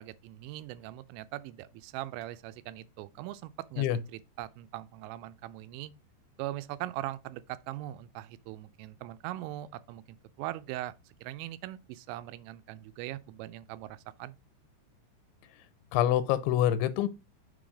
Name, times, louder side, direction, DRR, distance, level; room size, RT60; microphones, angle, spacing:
voice 1, 0.0-3.9 4.1-5.9 6.4-14.4, right 15 dB, 85° right, 2.9 m, -41 dB
voice 2, 15.9-17.1, left 11 dB, 85° left, 2.9 m, -26 dB
6.4 x 3.9 x 4.9 m
omnidirectional pair, 5.2 m